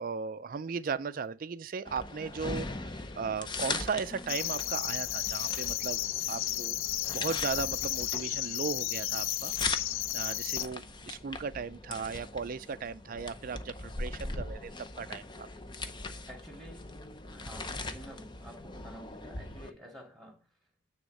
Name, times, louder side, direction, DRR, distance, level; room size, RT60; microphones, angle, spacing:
voice 1, 0.0-6.0 6.3-6.8 7.1-9.5 10.1-15.5, right 5 dB, 45° right, 0.4 m, -36 dB
sound 1, 1.9-19.7, left 3 dB, 25° left, 0.6 m, -40 dB
sound 2, 4.3-10.7, left 14 dB, 85° left, 0.4 m, -33 dB
voice 2, 16.3-16.9 17.3-20.4, right 1 dB, ahead, 2.2 m, -50 dB
9.3 x 3.6 x 6.4 m
head